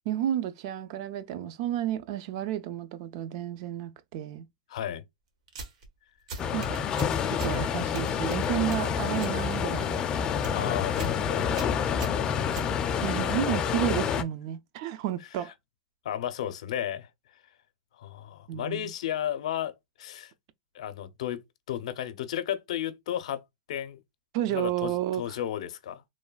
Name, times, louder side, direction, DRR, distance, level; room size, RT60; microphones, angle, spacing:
voice 1, 0.1-4.5 6.5-6.8 7.3-10.0 13.0-15.5 18.5-18.9 24.3-25.2, right 12 dB, 50° right, 0.4 m, -31 dB
voice 2, 4.7-5.0 10.5-11.5 13.2-13.7 16.0-17.1 17.9-20.3 20.7-23.4 23.7-24.0 24.5-26.0, left 10 dB, 75° left, 0.5 m, -33 dB
sound 1, 5.5-5.9 6.3-7.6 7.9-9.4 9.7-10.0 10.3-10.6 11.0-11.2 11.5-13.1, right 3 dB, 70° right, 1.0 m, -41 dB
sound 2, 6.4-14.2, left 7 dB, 25° left, 0.4 m, -28 dB
3.1 x 2.1 x 2.2 m
supercardioid pair, 140°, 4 cm